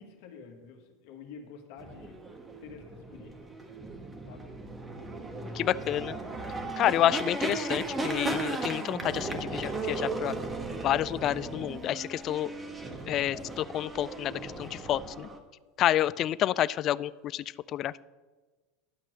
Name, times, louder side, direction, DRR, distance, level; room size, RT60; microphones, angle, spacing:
voice 1, 0.0-2.2 2.6-3.6 4.3-4.4 5.6-6.0 6.6-6.8, left 5 dB, 65° left, 3 dB, 1.8 m, -48 dB
sound 1, 1.8-15.4, right 2 dB, 20° right, 1.4 m, -36 dB
voice 2, 5.5-6.1 6.8-10.3 10.8-12.5 13.1-15.3 15.8-18.0, left 12 dB, 45° left, 19 dB, 0.3 m, -29 dB
sound 2, 9.1-12.6, equal, ahead, 1.6 m, -54 dB
11.5 x 6.1 x 6.4 m, 1.3 s
hypercardioid pair, 90°, 0 cm